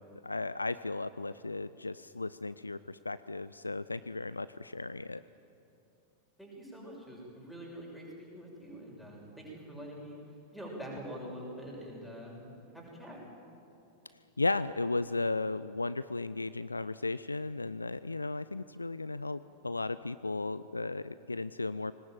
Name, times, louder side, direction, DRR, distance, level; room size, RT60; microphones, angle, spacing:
voice 1, 0.0-5.2 14.4-21.9, left 3 dB, 80° left, 16 dB, 0.4 m, -35 dB
voice 2, 6.4-10.1 10.5-13.2, equal, ahead, -3 dB, 6.0 m, -45 dB
21.5 x 19.0 x 9.1 m, 2.8 s
figure-of-eight pair, 90°, 0 cm